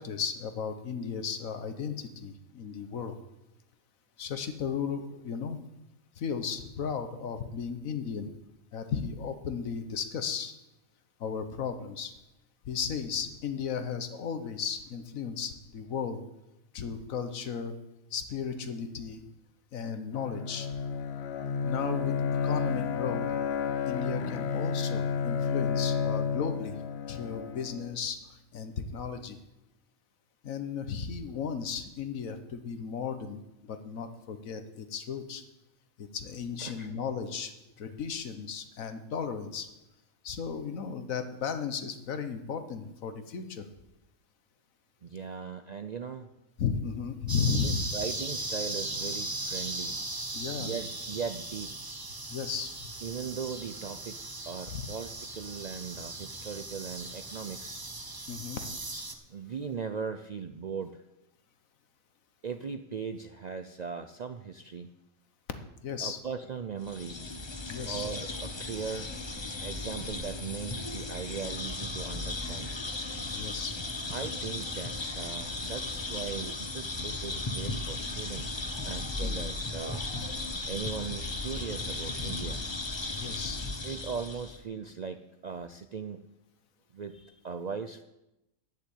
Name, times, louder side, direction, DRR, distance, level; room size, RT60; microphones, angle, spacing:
voice 1, 0.0-3.2 4.2-5.6 6.2-8.3 8.7-10.5 11.2-12.1 12.6-16.2 16.7-17.8 18.1-19.2 19.7-20.7 21.6-22.1 22.4-23.3 23.8-26.8 27.1-29.4 30.4-33.4 33.7-35.4 36.0-39.7 40.2-43.7 46.6-47.9 50.3-50.8 52.3-52.7 54.7-54.9 58.3-58.6 65.8-66.2 67.7-68.1 73.3-73.8 79.2-79.4 83.2-83.6, left 6 dB, 80° left, 9 dB, 1.5 m, -35 dB
Bowed string instrument, 20.1-27.9, left 6 dB, 60° left, 0.8 m, -31 dB
voice 2, 36.6-36.9 45.0-46.3 47.6-50.0 50.6-51.8 53.0-54.2 54.5-57.8 59.3-61.0 62.4-64.9 66.0-67.2 67.8-69.1 69.6-72.7 74.1-80.0 80.7-82.7 83.8-86.3 86.9-88.0, right 6 dB, 60° right, 8 dB, 0.4 m, -39 dB
sound 1, 47.3-59.1, right 2 dB, 20° right, 0.8 m, -38 dB
sound 2, 66.8-84.6, left 2 dB, 25° left, 0.9 m, -36 dB
11.0 x 6.6 x 8.3 m, 0.93 s
omnidirectional pair, 1.4 m